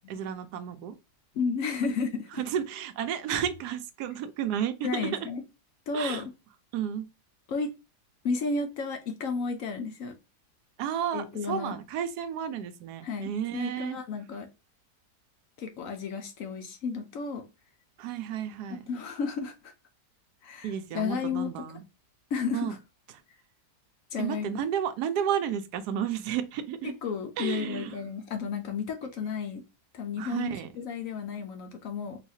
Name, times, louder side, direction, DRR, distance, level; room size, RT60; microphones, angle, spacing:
voice 1, 0.1-1.0 1.8-1.9 2.3-5.3 5.9-6.3 6.7-7.1 10.8-14.0 18.0-18.9 20.6-21.8 22.5-22.8 24.2-26.9 27.4-28.0 30.2-30.7, right 9 dB, 80° right, 1.1 m, -32 dB
voice 2, 1.3-2.4 4.8-5.4 5.9-6.3 7.5-7.7 8.2-10.2 11.1-11.8 13.0-14.5 15.6-17.5 18.9-19.7 20.4-21.6 22.3-22.8 24.1-24.5 26.8-29.6 29.9-32.2, left 5 dB, 65° left, 0.9 m, -32 dB
3.9 x 2.4 x 2.7 m
omnidirectional pair, 1.7 m